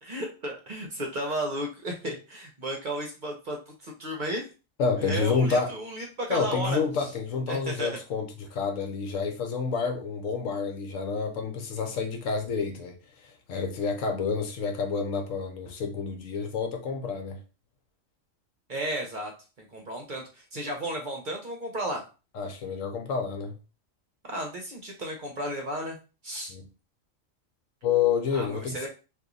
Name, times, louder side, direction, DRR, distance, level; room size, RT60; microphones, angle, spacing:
voice 1, 0.0-4.5 5.0-7.1 7.5-8.0 18.7-19.3 19.6-22.0 24.3-26.0 26.2-26.5 28.3-28.9, right 1 dB, 45° right, 0.7 m, -34 dB
voice 2, 4.8-5.7 6.3-12.9 13.5-17.4 22.3-23.6 26.5-26.6 27.8-28.9, left 5 dB, 80° left, 1.1 m, -29 dB
2.9 x 2.6 x 3.8 m
omnidirectional pair, 1.4 m